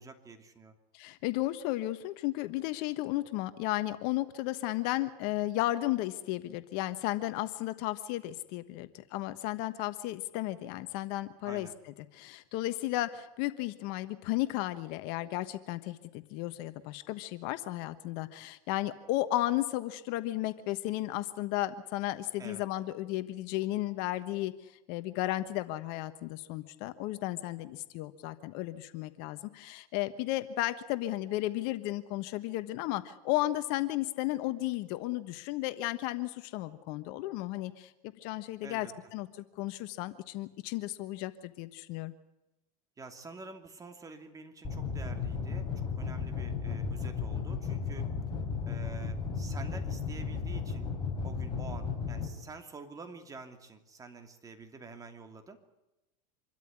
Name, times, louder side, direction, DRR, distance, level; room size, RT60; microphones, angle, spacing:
voice 1, 0.0-0.8 11.4-11.7 22.4-22.6 38.6-38.9 43.0-48.1 48.7-50.9 51.2-55.6, right 4 dB, 20° right, 6 dB, 2.7 m, -48 dB
voice 2, 0.9-37.9 38.2-42.1, left 16 dB, 55° left, 12 dB, 1.3 m, -34 dB
sound 1, 44.6-52.3, left 5 dB, 25° left, 4.6 m, -34 dB
26.0 x 13.0 x 9.7 m, 0.95 s
supercardioid pair, 125°, 19 cm